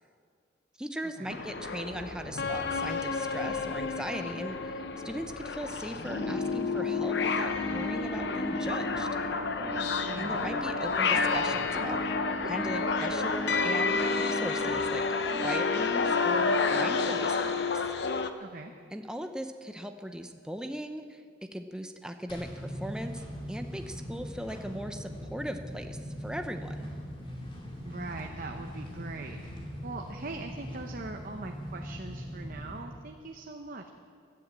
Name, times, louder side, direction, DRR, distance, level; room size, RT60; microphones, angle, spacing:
voice 1, 0.8-9.1 10.2-12.0 12.4-15.0 15.4-17.9 18.9-23.2 23.5-26.9, equal, 5° right, 6 dB, 0.6 m, -39 dB
sound 1, 1.3-18.3, left 4 dB, 60° left, 0.7 m, -30 dB
sound 2, 6.1-17.4, equal, 25° right, 3.8 m, -36 dB
voice 2, 10.0-10.4 18.4-18.7 27.8-33.9, right 3 dB, 45° right, 4 dB, 0.8 m, -41 dB
sound 3, 22.3-32.9, equal, 30° left, 2.5 m, -41 dB
16.5 x 11.0 x 7.4 m, 2.1 s
head